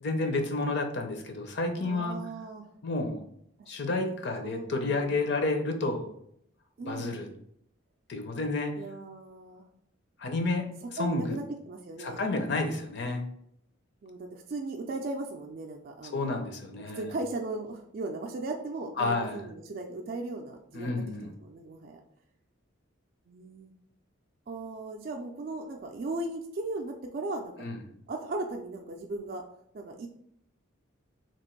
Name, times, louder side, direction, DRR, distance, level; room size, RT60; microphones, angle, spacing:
voice 1, 0.0-2.2 2.8-3.2 3.7-6.0 6.8-7.3 8.1-8.7 10.2-10.7 11.0-11.4 12.0-13.2 16.1-17.1 19.0-19.4 20.7-21.3 27.6-27.8, left 2 dB, 55° left, 5 dB, 0.6 m, -30 dB
voice 2, 1.7-2.7 3.6-4.1 4.4-5.3 6.8-7.3 8.8-9.6 10.8-12.4 14.0-16.5 17.0-22.0 23.3-23.7 24.5-27.7 28.1-29.4 29.7-30.1, right 2 dB, 45° right, 1 dB, 0.3 m, -37 dB
2.9 x 2.5 x 4.4 m, 0.71 s
head